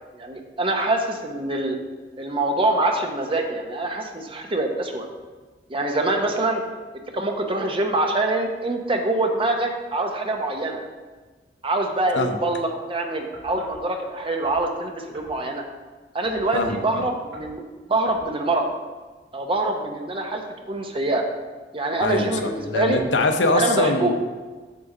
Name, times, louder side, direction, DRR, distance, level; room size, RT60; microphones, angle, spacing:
voice 1, 0.1-1.8 2.2-5.1 5.7-6.6 7.1-10.8 11.6-15.6 16.1-17.6 17.9-18.7 19.3-21.2 21.7-23.0 23.5-24.1, right 2 dB, 30° right, 3 dB, 0.9 m, -25 dB
sound 1, 13.3-13.8 14.4-14.7 15.1-15.4 16.2-16.7 17.3-17.6 18.0-18.3, right 1 dB, 85° right, 1.9 m, -45 dB
voice 2, 16.5-17.0 22.0-24.1, left 2 dB, 80° left, 6 dB, 0.7 m, -23 dB
7.5 x 7.0 x 3.8 m, 1.3 s
head